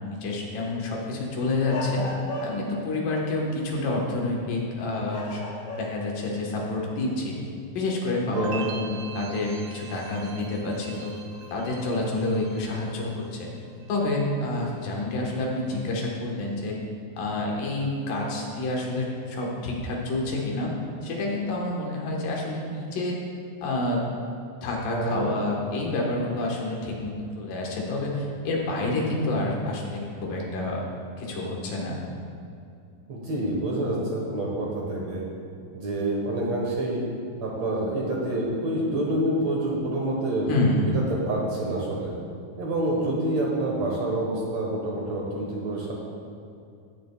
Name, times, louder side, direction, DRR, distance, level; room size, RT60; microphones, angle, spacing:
voice 1, 0.0-2.0 2.4-5.4 5.8-7.3 7.7-11.2 11.5-13.5 13.9-16.8 17.2-20.7 21.0-23.2 23.6-24.1 24.6-30.8 31.2-32.0 40.5-40.9, left 2 dB, 75° left, -2 dB, 2.9 m, -28 dB
sound 1, 1.6-2.8 4.3-4.6 5.1-6.2 6.6-6.7 9.1-9.2 10.8-11.1, left 1 dB, 40° left, 2.2 m, -35 dB
voice 2, 8.3-8.7 24.9-25.3 33.1-35.3 35.7-37.0 37.4-40.5 40.9-42.1 42.6-45.9, right 1 dB, 60° right, -3 dB, 2.0 m, -27 dB
sound 2, 8.4-13.4 13.7-14.3, right 4 dB, 85° right, 3.0 m, -42 dB
15.0 x 10.0 x 2.3 m, 2.5 s
omnidirectional pair, 4.1 m